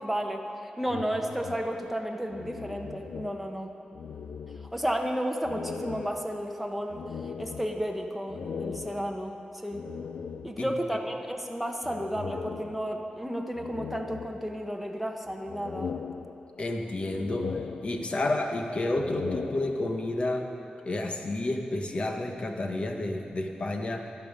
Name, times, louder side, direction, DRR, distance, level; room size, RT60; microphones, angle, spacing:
voice 1, 0.0-3.7 4.7-7.0 7.4-9.4 9.6-9.9 10.4-15.9 18.1-18.2, equal, ahead, 2 dB, 1.0 m, -32 dB
sound 1, 0.8-3.7 3.9-5.0 5.4-10.9 11.8-13.1 13.6-14.9 15.3-16.8 17.1-18.4 18.8-20.2, left 6 dB, 85° left, 0.4 m, -39 dB
voice 2, 16.6-17.5 17.8-20.4 20.8-24.0, left 2 dB, 45° left, 3 dB, 1.2 m, -30 dB
13.5 x 11.0 x 5.2 m, 2.8 s
wide cardioid pair, 105°, 3 cm